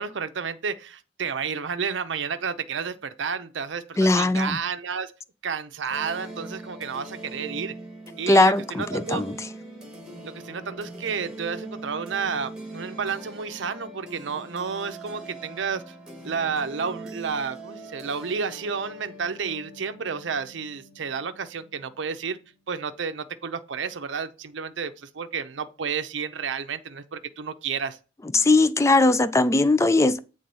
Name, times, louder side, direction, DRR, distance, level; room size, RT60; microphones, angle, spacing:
voice 1, 0.0-5.1 5.4-7.7 8.2-9.2 10.2-15.9 16.2-22.4 22.7-28.0, right 6 dB, 80° right, 0.6 m, -31 dB
voice 2, 4.0-4.6 8.3-9.4 28.3-30.2, left 2 dB, 15° left, 0.4 m, -19 dB
sound 1, 5.9-22.5, right 2 dB, 5° right, 1.6 m, -42 dB
7.7 x 3.7 x 5.4 m
head